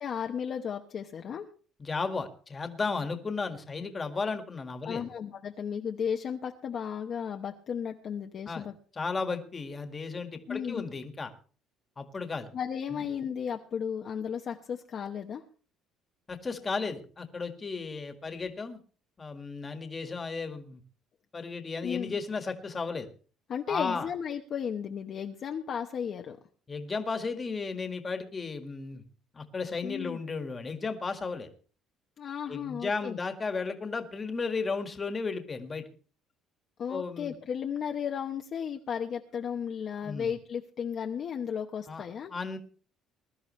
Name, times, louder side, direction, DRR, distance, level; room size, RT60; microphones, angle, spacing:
voice 1, 0.0-1.4 4.8-8.7 10.5-10.9 12.5-15.4 21.8-22.1 23.5-26.4 29.8-30.2 32.2-33.2 36.8-42.3, left 7 dB, 40° left, 3 dB, 1.0 m, -34 dB
voice 2, 1.8-5.0 8.5-8.7 9.0-11.3 12.0-12.5 12.9-13.0 16.3-18.8 19.2-20.8 21.3-23.1 23.7-24.1 26.7-29.0 29.3-31.5 32.5-35.8 36.9-37.3 40.0-40.3 41.9-42.0 42.3-42.6, left 4 dB, 20° left, 7 dB, 1.7 m, -34 dB
21.5 x 12.5 x 3.2 m, 0.40 s
cardioid pair, 160°, 0 cm